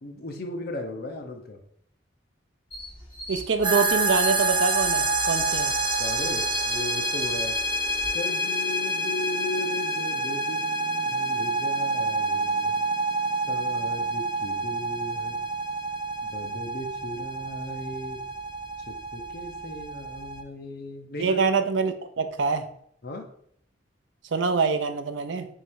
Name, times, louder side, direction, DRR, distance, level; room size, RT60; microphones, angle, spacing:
voice 1, 0.0-1.6 6.0-7.6 8.1-12.8 13.5-15.5 16.2-18.3 18.9-21.4 23.0-23.3, left 1 dB, 55° left, 4 dB, 0.7 m, -36 dB
sound 1, 2.7-8.1, equal, 10° left, 2.0 m, -40 dB
voice 2, 3.3-5.7 21.2-22.7 24.3-25.5, right 4 dB, 75° right, 8 dB, 0.5 m, -25 dB
sound 2, 3.6-20.4, right 2 dB, 25° right, 0.5 m, -28 dB
3.7 x 3.1 x 4.6 m, 0.65 s
head